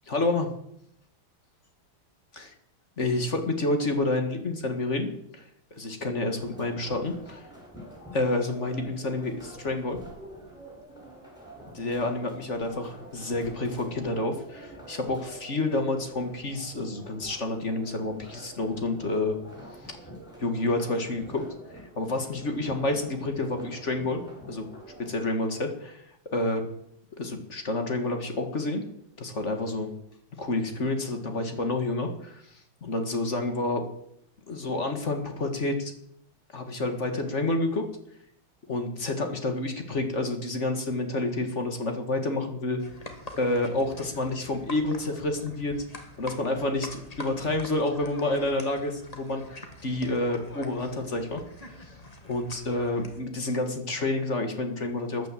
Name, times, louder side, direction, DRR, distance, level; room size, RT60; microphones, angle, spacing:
voice 1, 0.1-0.5 2.4-2.5 3.0-5.4 5.7-7.4 8.1-10.0 11.7-19.4 20.4-21.5 22.0-24.2 24.5-24.7 25.0-26.0 26.3-26.6 27.2-28.8 29.2-29.9 30.4-32.4 32.8-33.9 34.5-35.9 36.5-37.8 38.7-42.8 43.3-45.8 46.2-51.4 52.3-55.3, left 2 dB, 35° left, 6 dB, 1.9 m, -29 dB
sound 1, 6.4-25.1, right 1 dB, ahead, 5.4 m, -47 dB
sound 2, 42.8-53.2, left 1 dB, 20° left, 1.6 m, -45 dB
13.5 x 10.0 x 7.5 m, 0.73 s
omnidirectional pair, 2.3 m